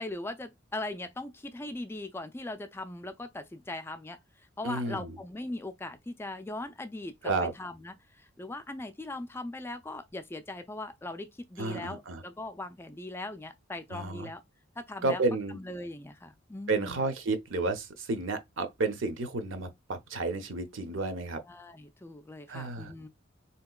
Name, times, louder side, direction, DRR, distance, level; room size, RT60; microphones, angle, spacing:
voice 1, 0.0-7.1 7.5-14.4 14.8-15.2 15.5-17.1 21.4-23.1, left 2 dB, 10° left, 0.3 m, -40 dB
voice 2, 4.6-5.2 7.2-7.5 11.6-12.2 13.9-14.3 15.0-15.6 16.7-21.4 22.5-22.9, right 3 dB, 75° right, 0.7 m, -31 dB
3.6 x 2.8 x 2.2 m
head